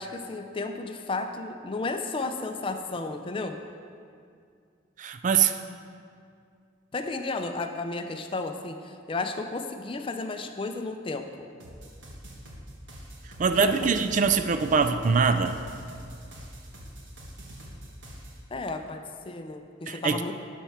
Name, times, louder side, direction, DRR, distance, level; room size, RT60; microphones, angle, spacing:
voice 1, 0.0-3.6 6.9-11.3 13.6-13.7 18.5-20.3, left 3 dB, 25° left, 6 dB, 0.5 m, -33 dB
voice 2, 5.0-5.6 13.4-15.6 19.9-20.2, right 5 dB, 40° right, 9 dB, 0.3 m, -23 dB
sound 1, 11.6-18.4, equal, 70° right, 1.5 m, -44 dB
12.0 x 4.5 x 5.7 m, 2.3 s
head